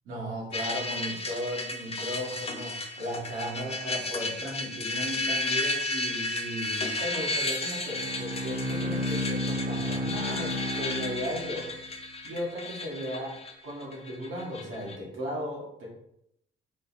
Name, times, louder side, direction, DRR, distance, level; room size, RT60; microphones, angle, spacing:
voice 1, 0.0-11.7 12.2-13.4 13.6-15.9, equal, 75° right, -3 dB, 1.7 m, -36 dB
sound 1, 0.5-15.0, left 2 dB, 30° left, 0.7 m, -33 dB
Bowed string instrument, 7.7-11.8, left 1 dB, 55° right, 1.1 m, -32 dB
4.1 x 2.7 x 4.1 m, 0.77 s
cardioid pair, 90°, 20 cm